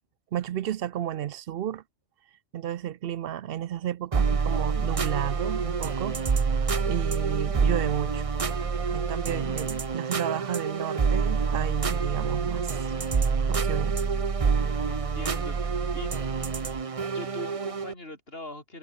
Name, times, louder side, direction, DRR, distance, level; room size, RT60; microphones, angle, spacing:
voice 1, 0.3-1.8 2.5-6.4 6.9-8.2 8.9-12.9 13.5-14.0, right 11 dB, 65° right, 0.7 m, -32 dB
sound 1, 4.1-17.9, right 5 dB, 35° right, 0.8 m, -27 dB
voice 2, 14.8-16.2 17.1-18.8, left 1 dB, 60° left, 5.8 m, -42 dB
omnidirectional pair, 1.1 m